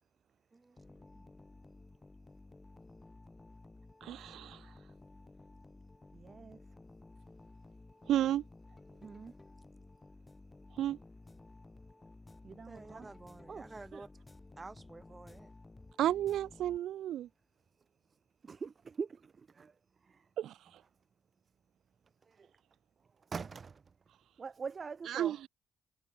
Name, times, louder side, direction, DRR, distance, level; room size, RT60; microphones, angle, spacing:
voice 1, 0.5-1.4 12.7-14.1 14.6-15.5, right 3 dB, 20° right, 6.8 m, -51 dB
sound 1, 0.8-17.2, left 2 dB, 20° left, 2.4 m, -55 dB
voice 2, 4.0-4.7 8.1-8.4 10.8-11.0 16.0-17.3 20.4-20.6 25.1-25.5, right 12 dB, 75° right, 0.7 m, -32 dB
voice 3, 6.1-6.6 9.0-9.3 12.4-13.1 13.5-14.0 18.4-19.7 20.1-20.2 22.3-22.5 23.3-23.8 24.4-25.4, right 5 dB, 40° right, 1.5 m, -44 dB
cardioid pair, 90°, 0 cm